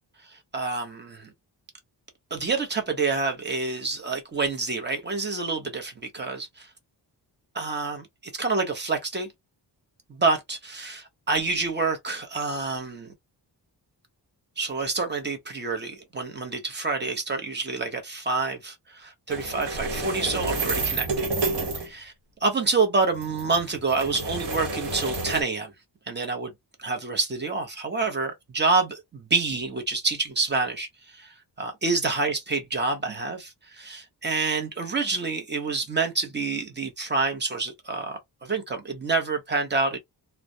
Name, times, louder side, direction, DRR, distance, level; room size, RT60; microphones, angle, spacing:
voice 1, 0.5-1.3 2.3-6.7 7.5-8.1 8.3-9.3 10.1-13.1 14.6-21.1 21.8-22.1 22.4-25.7 26.1-26.5 26.8-30.9 31.1-40.0, right 4 dB, 25° right, 0.7 m, -27 dB
sound 1, 19.3-21.9 23.1-25.4, right 3 dB, 70° right, 0.9 m, -30 dB
2.2 x 2.1 x 2.6 m
wide cardioid pair, 155°, 42 cm